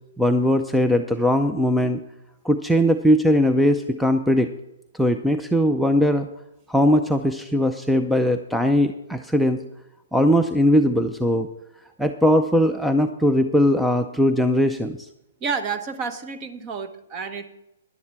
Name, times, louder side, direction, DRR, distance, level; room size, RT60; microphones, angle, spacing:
voice 1, 0.2-2.0 2.4-4.5 4.9-6.3 6.7-9.6 10.1-11.5 12.0-15.1, equal, ahead, 8 dB, 0.5 m, -20 dB
voice 2, 15.4-17.5, right 5 dB, 30° right, 10 dB, 1.2 m, -30 dB
11.0 x 11.0 x 4.7 m, 0.90 s
hypercardioid pair, 135°, 0 cm